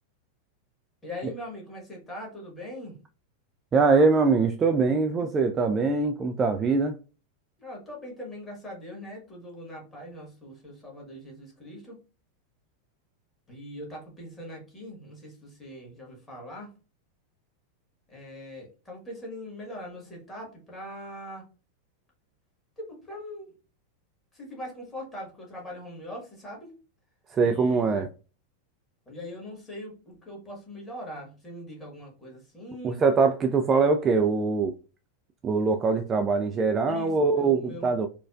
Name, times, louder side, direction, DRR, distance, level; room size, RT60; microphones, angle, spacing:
voice 1, 1.0-3.0 7.6-12.0 13.5-16.7 18.1-21.5 22.8-23.5 24.3-26.8 27.4-28.0 29.0-33.0 36.8-37.9, left 1 dB, 15° left, 1.6 m, -41 dB
voice 2, 3.7-6.9 27.3-28.1 32.8-34.7 35.4-38.1, right 4 dB, 25° right, 0.3 m, -23 dB
4.0 x 2.3 x 2.4 m
figure-of-eight pair, 90°, 0 cm